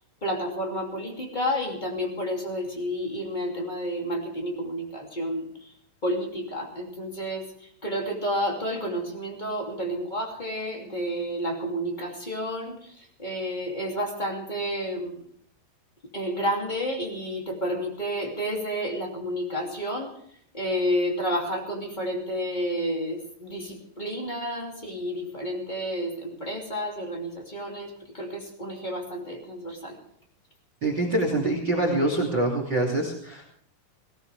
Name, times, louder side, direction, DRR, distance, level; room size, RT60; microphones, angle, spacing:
voice 1, 0.2-5.7 6.0-15.2 16.1-20.1 20.5-30.0, equal, 20° left, 1 dB, 1.3 m, -30 dB
voice 2, 30.8-33.5, right 2 dB, 30° right, 1 dB, 2.6 m, -25 dB
19.0 x 18.5 x 3.4 m, 0.65 s
omnidirectional pair, 5.6 m